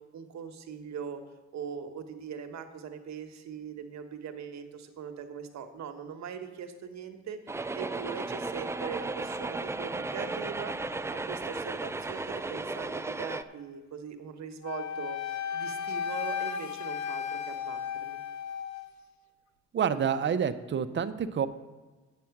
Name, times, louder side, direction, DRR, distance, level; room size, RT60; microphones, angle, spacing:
voice 1, 0.1-1.2 1.5-10.7 11.1-18.2, right 7 dB, 65° right, 7 dB, 1.1 m, -41 dB
sound 1, 7.5-13.4, right 3 dB, 10° right, 0.3 m, -35 dB
Wind instrument woodwind instrument, 14.6-18.9, left 8 dB, 65° left, 0.8 m, -34 dB
voice 2, 19.7-21.5, right 7 dB, 40° right, 11 dB, 0.6 m, -28 dB
8.4 x 7.5 x 5.9 m, 1.2 s
cardioid pair, 90°, 30 cm